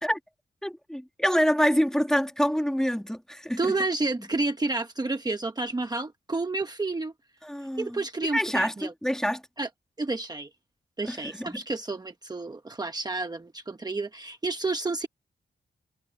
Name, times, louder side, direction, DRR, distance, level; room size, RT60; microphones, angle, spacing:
voice 1, 0.6-3.7 7.4-8.0 8.3-8.7 9.0-9.4 11.1-11.6, equal, 5° left, 1.4 m, -26 dB
voice 2, 3.6-7.1 7.8-8.9 9.6-9.7 10.0-10.5 11.0-15.1, right 3 dB, 20° right, 1.0 m, -30 dB
wide cardioid pair, 145°, 19 cm